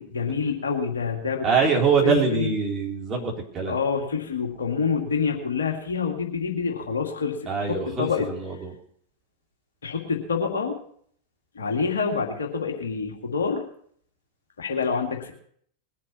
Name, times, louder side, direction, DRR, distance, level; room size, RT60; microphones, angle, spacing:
voice 1, 0.0-1.5 2.0-2.5 3.7-8.3 9.8-10.8 11.5-13.6 14.6-15.3, left 5 dB, 70° left, 2 dB, 2.2 m, -27 dB
voice 2, 1.4-3.8 7.5-8.7, right 5 dB, 25° right, -1 dB, 3.8 m, -24 dB
20.5 x 7.6 x 5.5 m, 0.62 s
figure-of-eight pair, 90°, 0 cm